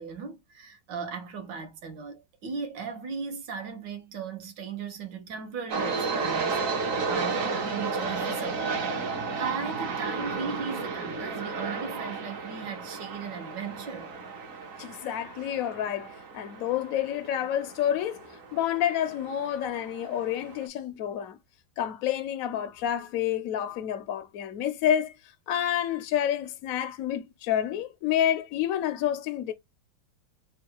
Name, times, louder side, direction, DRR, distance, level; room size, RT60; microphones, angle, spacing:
voice 1, 0.0-14.1, right 5 dB, 70° right, 1.6 m, -37 dB
sound 1, 5.7-20.7, right 4 dB, 50° right, 1.2 m, -33 dB
voice 2, 14.8-16.1 16.3-21.4 21.8-25.1 25.5-29.5, left 10 dB, 70° left, 0.8 m, -29 dB
3.7 x 2.3 x 4.5 m
omnidirectional pair, 2.0 m